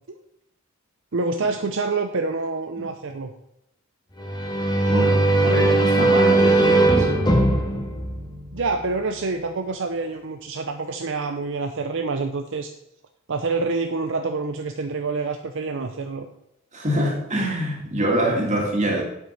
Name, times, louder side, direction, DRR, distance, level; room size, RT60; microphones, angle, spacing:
voice 1, 1.1-3.3 8.5-12.7 13.3-16.3, right 3 dB, 65° right, 6 dB, 0.7 m, -27 dB
sound 1, 4.2-8.9, right 2 dB, 20° left, 1.6 m, -19 dB
voice 2, 4.9-7.1 16.7-19.0, right 1 dB, 35° right, 0 dB, 2.5 m, -25 dB
8.3 x 8.0 x 5.8 m, 0.82 s
head